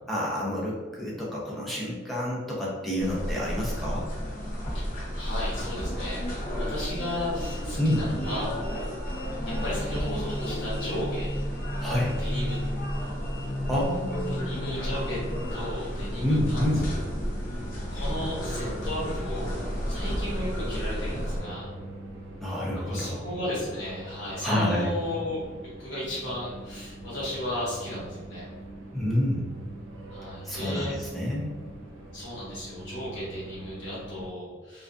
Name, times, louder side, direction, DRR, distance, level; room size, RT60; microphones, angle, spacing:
voice 1, 0.1-4.1 7.8-8.0 11.8-12.2 13.7-14.5 16.2-16.9 22.4-23.2 24.4-24.9 28.9-29.5 30.4-31.5, left 1 dB, ahead, -6 dB, 0.5 m, -28 dB
sound 1, 3.0-21.4, equal, 45° left, 0.5 m, -32 dB
voice 2, 5.1-6.2 6.5-8.6 9.6-11.3 12.0-12.6 14.3-15.2 15.5-17.0 17.9-19.6 19.9-21.7 22.9-25.4 25.8-28.4 30.1-30.9 32.1-34.8, left 1 dB, 70° left, -7 dB, 1.1 m, -34 dB
sound 2, 15.9-34.3, right 1 dB, 75° right, 0.4 m, -44 dB
2.4 x 2.4 x 2.3 m, 1.4 s
head